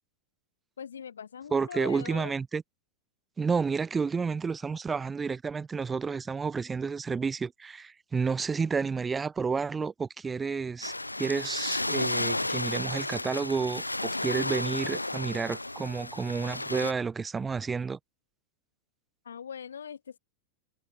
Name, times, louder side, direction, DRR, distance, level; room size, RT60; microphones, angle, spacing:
voice 1, 0.8-2.3 19.2-20.2, left 7 dB, 70° left, 2.9 m, -41 dB
voice 2, 1.5-2.6 3.4-18.0, right 5 dB, 15° right, 1.0 m, -30 dB
sound 1, 10.8-16.9, left 2 dB, 85° left, 1.1 m, -32 dB
figure-of-eight pair, 90°, 0 cm